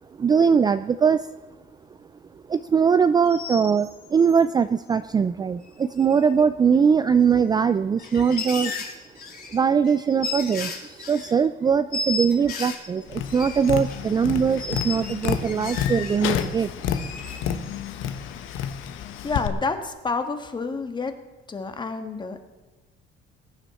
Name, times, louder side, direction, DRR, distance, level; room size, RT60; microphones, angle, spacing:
voice 1, 0.2-1.3 2.5-8.7 9.5-16.9, right 6 dB, 20° right, 12 dB, 0.3 m, -21 dB
sound 1, 3.2-4.4 5.7-5.8 6.0-6.4 6.7-6.8 7.7-11.3 11.9-14.0 14.6-16.5 16.8-17.9 18.2-18.5, left 3 dB, 45° left, 3.1 m, -34 dB
Tap, 13.1-19.5, left 9 dB, 75° left, 1.2 m, -30 dB
voice 2, 19.2-21.2 21.5-22.4, left 4 dB, 20° left, 7 dB, 1.5 m, -29 dB
21.0 x 10.0 x 4.3 m, 1.2 s
cardioid pair, 140°, 20 cm